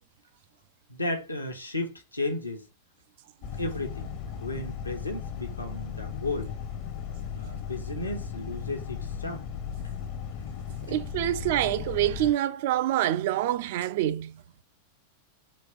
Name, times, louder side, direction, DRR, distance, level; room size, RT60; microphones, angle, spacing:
voice 1, 0.9-2.7 3.6-4.1 4.4-6.5 7.3-9.5, left 2 dB, 85° left, 0.9 m, -34 dB
sound 1, 3.4-12.3, left 7 dB, 45° left, 0.7 m, -36 dB
voice 2, 10.9-14.4, right 13 dB, 50° right, 0.3 m, -26 dB
4.3 x 2.9 x 3.4 m
figure-of-eight pair, 90°, 0 cm